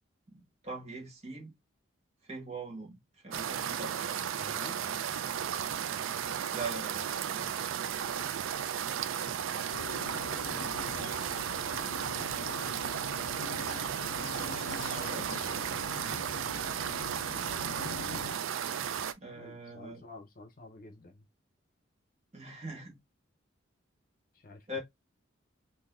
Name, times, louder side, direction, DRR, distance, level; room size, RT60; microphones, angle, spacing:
voice 1, 0.3-1.5 2.3-3.0 3.2-4.2 6.5-7.6 14.4-15.7 19.2-20.0 22.3-23.0 24.7-24.8, right 2 dB, 35° right, 1.2 m, -42 dB
sound 1, 3.3-19.1, right 8 dB, 90° right, 0.4 m, -34 dB
voice 2, 4.2-4.8 9.3-10.0 10.6-11.7 12.1-12.8 19.3-21.2 24.3-24.7, left 2 dB, 45° left, 0.7 m, -52 dB
sound 2, 9.7-18.3, left 7 dB, 85° left, 0.3 m, -44 dB
3.9 x 2.7 x 2.5 m
head